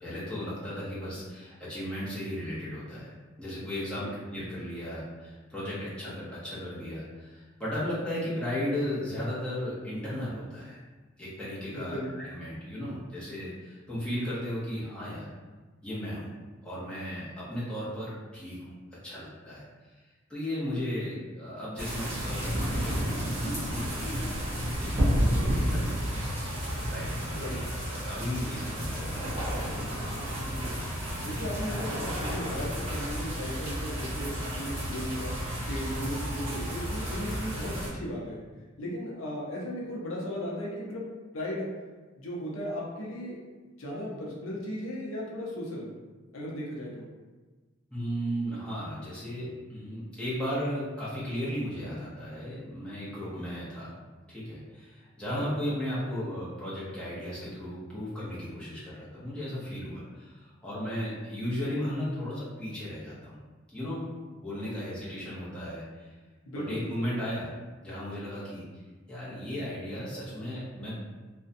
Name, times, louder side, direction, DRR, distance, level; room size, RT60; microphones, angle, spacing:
voice 1, 0.0-3.1 3.4-10.8 11.2-15.3 15.8-16.3 16.6-18.6 19.0-19.6 20.3-23.1 23.5-26.6 26.9-27.6 27.9-29.9 47.9-53.9 54.3-63.4 63.7-64.0 64.4-66.1 66.5-67.5 67.8-68.6 69.1-71.0, equal, 5° left, -10 dB, 0.7 m, -35 dB
voice 2, 11.7-12.1 27.3-27.6 30.4-30.7 31.2-35.3 35.6-38.4 38.8-41.0 41.3-41.7 42.2-43.4 43.8-45.9 46.3-47.1 55.3-55.4 64.6-64.8 66.5-67.1, equal, 80° left, -4 dB, 0.6 m, -36 dB
sound 1, 21.8-37.9, equal, 30° right, 0.9 m, -31 dB
2.5 x 2.1 x 2.5 m, 1.3 s
head